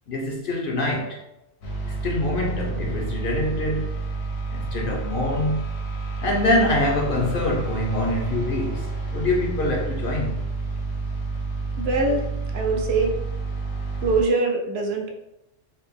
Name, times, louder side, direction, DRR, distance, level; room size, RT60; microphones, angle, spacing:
voice 1, 0.1-1.2 1.8-3.9 4.5-5.6 6.2-10.3, left 1 dB, 60° left, 0 dB, 0.6 m, -25 dB
sound 1, 1.6-14.2, right 3 dB, 80° left, 1.2 m, -30 dB
voice 2, 11.8-12.3 12.5-13.1 14.0-15.1, right 3 dB, 65° right, 2 dB, 0.8 m, -23 dB
4.1 x 2.0 x 3.4 m, 0.88 s
omnidirectional pair, 1.3 m